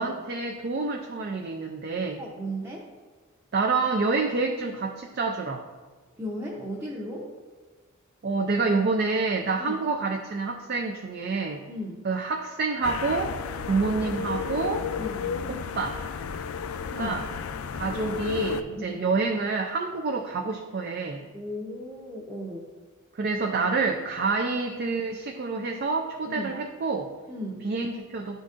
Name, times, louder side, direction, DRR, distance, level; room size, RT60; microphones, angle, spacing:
voice 1, 0.0-2.2 3.5-5.6 8.2-11.6 12.0-13.4 13.6-14.9 15.5-16.0 17.0-17.2 17.7-21.3 23.1-27.1 27.6-28.4, right 4 dB, 45° right, 3 dB, 0.4 m, -28 dB
voice 2, 2.2-2.9 6.2-7.3 9.6-9.8 11.7-12.0 15.0-15.3 16.9-17.2 18.8-19.0 21.3-22.7 26.3-26.5 27.3-27.6, equal, 10° right, -6 dB, 0.7 m, -35 dB
sound 1, 12.8-18.6, left 5 dB, 80° left, 0.4 m, -32 dB
11.0 x 3.9 x 2.5 m, 1.4 s
head